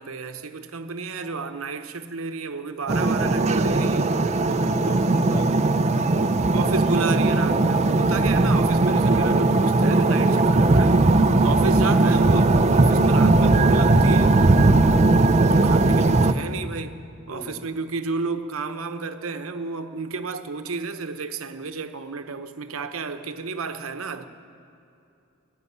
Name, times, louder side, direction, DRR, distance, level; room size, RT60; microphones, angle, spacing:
voice 1, 0.0-4.1 6.5-14.4 15.5-24.3, right 4 dB, 85° right, 9 dB, 0.9 m, -31 dB
sound 1, 2.9-16.3, right 2 dB, 30° right, 0.5 m, -18 dB
voice 2, 4.4-5.8 11.2-11.6 14.6-15.0 17.3-17.7, left 1 dB, 35° left, -1 dB, 2.6 m, -39 dB
15.0 x 9.7 x 9.7 m, 2.7 s
head